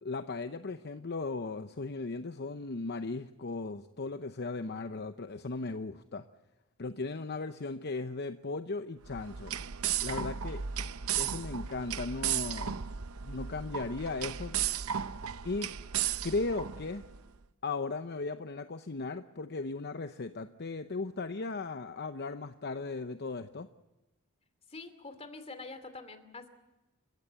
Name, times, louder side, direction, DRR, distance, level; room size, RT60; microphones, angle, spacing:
voice 1, 0.0-6.2 6.8-9.5 10.0-10.6 11.2-12.8 13.2-14.6 15.4-15.7 16.2-17.1 17.6-23.7, left 3 dB, 50° left, 9 dB, 0.8 m, -37 dB
sound 1, 9.0-17.2, right 9 dB, 75° right, 0.7 m, -35 dB
voice 2, 24.7-26.5, left 3 dB, 30° left, 9 dB, 2.7 m, -45 dB
30.0 x 16.0 x 8.2 m, 1.0 s
head